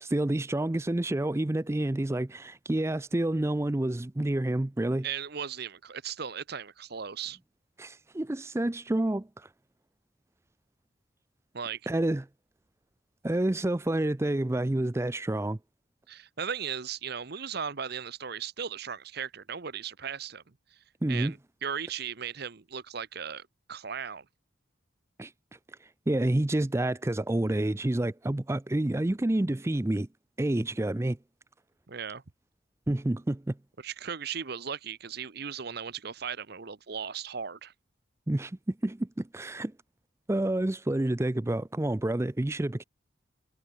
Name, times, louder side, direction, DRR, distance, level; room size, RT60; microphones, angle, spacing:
voice 1, 0.0-5.1 7.8-9.5 11.9-12.2 13.2-15.6 21.0-21.3 25.2-25.3 25.8-30.1 30.4-31.2 32.9-33.5 38.3-39.7 40.3-42.8, right 1 dB, 15° right, 0.4 m, -28 dB
voice 2, 5.0-7.4 11.5-11.8 16.1-20.4 20.7-20.8 21.1-24.2 31.9-32.2 33.8-37.7, right 7 dB, 50° right, 0.8 m, -37 dB
head